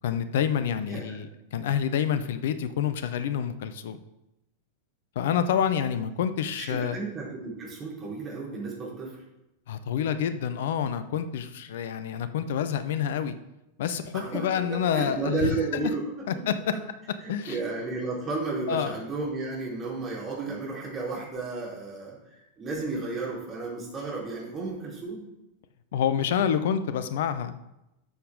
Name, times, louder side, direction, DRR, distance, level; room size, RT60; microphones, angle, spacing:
voice 1, 0.0-4.0 5.1-7.0 9.7-13.4 13.8-15.9 16.3-16.5 17.3-17.6 18.7-19.0 25.9-27.5, left 8 dB, 55° left, 11 dB, 0.7 m, -28 dB
voice 2, 0.9-1.2 6.6-9.2 14.1-16.4 16.7-16.8 17.2-25.3, right 3 dB, 25° right, -5 dB, 4.0 m, -33 dB
12.5 x 6.8 x 3.7 m, 0.90 s
figure-of-eight pair, 90°, 0 cm